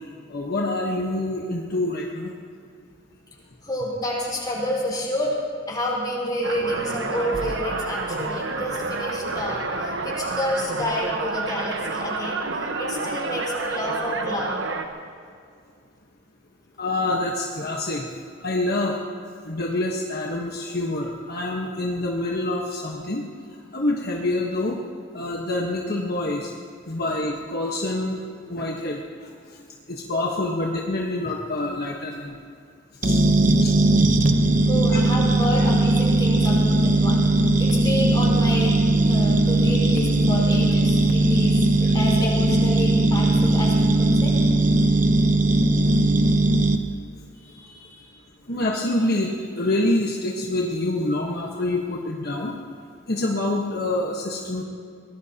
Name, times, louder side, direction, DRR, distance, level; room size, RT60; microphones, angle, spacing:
voice 1, 0.3-2.3 16.8-18.1 18.4-18.9 19.4-23.2 23.7-24.7 25.1-26.5 26.9-28.2 28.5-29.0 29.9-32.3 33.0-33.2 33.6-33.7 48.5-52.5 53.1-54.6, left 2 dB, 55° left, -1 dB, 1.3 m, -26 dB
voice 2, 3.6-5.3 5.7-14.6 34.7-44.3 47.4-48.1, left 1 dB, 25° left, -4 dB, 4.8 m, -29 dB
sound 1, 6.4-14.9, right 3 dB, 80° right, 1.2 m, -29 dB
sound 2, 33.0-46.8, right 2 dB, 45° right, 0.9 m, -19 dB
23.5 x 19.0 x 2.9 m, 2.2 s
head